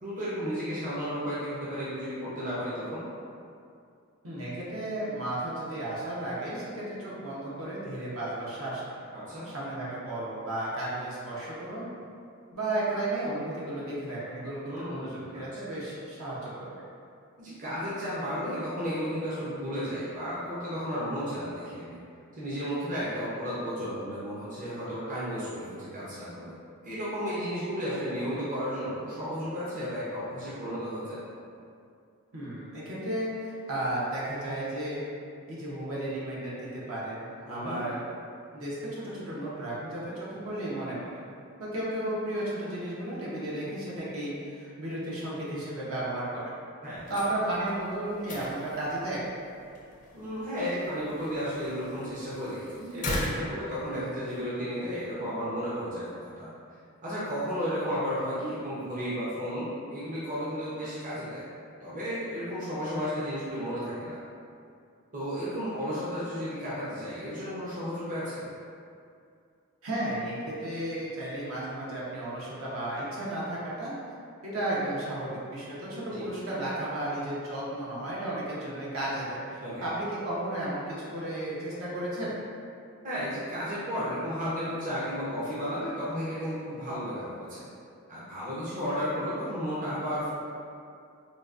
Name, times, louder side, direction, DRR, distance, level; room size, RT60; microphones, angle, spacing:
voice 1, 0.0-3.0 9.1-9.5 14.7-15.8 17.4-22.0 22.4-26.5 26.8-31.2 37.5-37.8 46.8-47.1 50.1-56.5 57.0-61.4 61.8-64.2 65.1-68.5 76.1-76.3 79.6-79.9 83.0-87.7 88.1-90.3, equal, 35° right, -10 dB, 0.6 m, -33 dB
voice 2, 4.2-8.9 9.4-11.8 12.5-16.7 32.3-35.0 35.5-38.0 38.5-41.1 41.6-46.5 47.1-49.3 69.8-74.0 74.4-82.3, right 1 dB, 70° right, -7 dB, 0.8 m, -33 dB
sound 1, 46.9-54.4, left 1 dB, 35° left, 0.4 m, -40 dB
3.8 x 2.3 x 2.4 m, 2.4 s
head